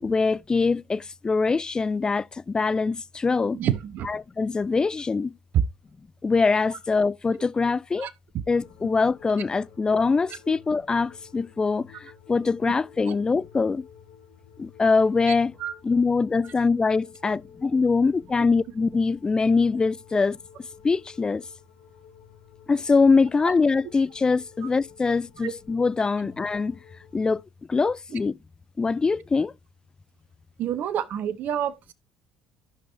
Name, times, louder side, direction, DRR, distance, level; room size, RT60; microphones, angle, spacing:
voice 1, 0.0-3.6 4.1-5.4 6.2-8.1 8.5-13.8 14.6-15.5 15.8-20.4 20.8-21.4 22.7-26.8 27.1-27.4 27.7-28.3 28.8-29.5, left 4 dB, 25° left, 0.4 m, -23 dB
voice 2, 3.5-4.1 5.5-5.6 6.7-6.8 8.0-8.1 12.6-12.7 13.1-13.2 15.3-15.4 15.6-15.7 23.4-23.5 25.4-25.5 30.6-31.9, right 10 dB, 55° right, 0.9 m, -27 dB
sound 1, 8.5-27.4, left 9 dB, 75° left, 1.6 m, -52 dB
15.0 x 5.4 x 2.6 m
hypercardioid pair, 60°, 3 cm